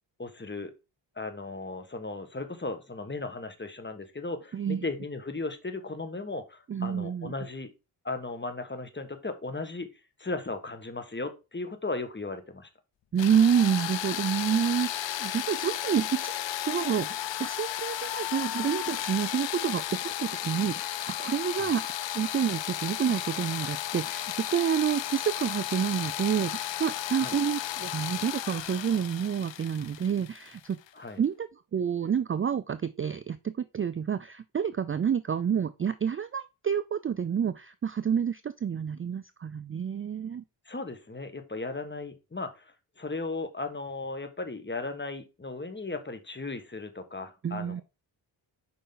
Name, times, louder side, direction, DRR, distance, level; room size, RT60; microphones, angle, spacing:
voice 1, 0.2-0.7 1.2-7.7 8.0-9.9 10.2-12.7 21.5-21.7 27.1-27.3 30.9-31.2 40.6-47.8, left 3 dB, 20° left, 9 dB, 1.4 m, -36 dB
voice 2, 4.5-4.9 6.7-7.3 13.1-16.3 16.6-30.8 31.2-40.4 47.4-47.8, right 8 dB, 30° right, 13 dB, 0.4 m, -29 dB
sound 1, 13.2-30.9, left 13 dB, 60° left, 0.6 m, -34 dB
6.6 x 5.1 x 3.8 m, 0.27 s
cardioid pair, 60°, 50 cm